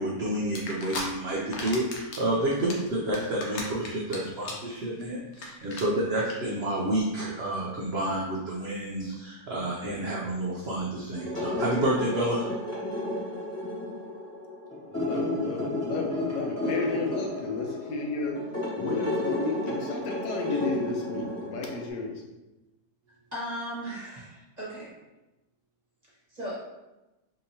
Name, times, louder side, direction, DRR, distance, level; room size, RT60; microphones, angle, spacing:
voice 1, 0.0-12.5, right 1 dB, 80° right, -4 dB, 0.5 m, -29 dB
sound 1, 0.6-1.0 1.4-2.2 2.5-4.2 4.4-4.7 5.0-5.1 5.3-5.5 5.7-5.8 6.2-6.3, left 3 dB, 65° left, 1.1 m, -35 dB
sound 2, 11.1-21.9, left 2 dB, 10° left, 1.0 m, -32 dB
voice 2, 14.9-18.4 18.8-22.2, left 3 dB, 80° left, 1 dB, 1.2 m, -32 dB
voice 3, 23.3-24.9 26.3-26.6, equal, 35° right, -7 dB, 0.7 m, -36 dB
3.7 x 2.8 x 2.7 m, 1.0 s
omnidirectional pair, 1.8 m